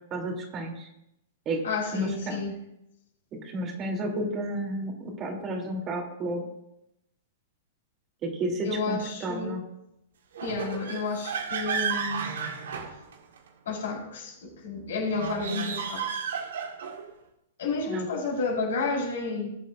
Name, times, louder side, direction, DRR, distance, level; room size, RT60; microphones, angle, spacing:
voice 1, 0.1-0.9 1.4-1.6 1.9-2.4 3.5-6.4 8.2-9.6 17.9-18.0, right 1 dB, 30° right, 0 dB, 3.2 m, -31 dB
voice 2, 1.6-2.6 8.6-9.5 10.4-12.3 13.6-16.3 17.6-19.5, left 3 dB, 70° left, -2 dB, 4.4 m, -31 dB
sound 1, 10.3-13.5 15.1-17.1, right 6 dB, 70° right, 1.7 m, -33 dB
19.5 x 7.5 x 2.6 m, 0.82 s
hypercardioid pair, 110°, 0 cm